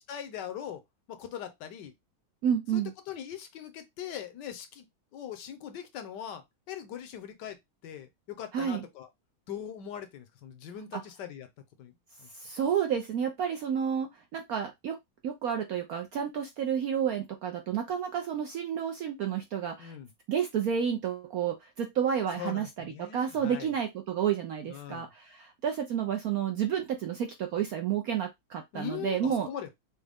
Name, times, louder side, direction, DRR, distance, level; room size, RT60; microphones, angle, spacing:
voice 1, 0.1-0.8 1.1-1.9 2.7-2.8 3.1-4.8 5.1-7.6 7.8-9.1 9.5-11.5 11.8-11.9 12.2-12.3 19.8-20.1 22.4-23.7 24.7-25.1 28.7-29.7, left 9 dB, 65° left, 1.3 m, -41 dB
voice 2, 2.4-2.9 8.5-8.8 10.9-11.0 12.3-15.0 15.2-19.9 20.3-29.5, right 8 dB, 75° right, 0.8 m, -30 dB
6.3 x 2.2 x 3.4 m
omnidirectional pair, 2.2 m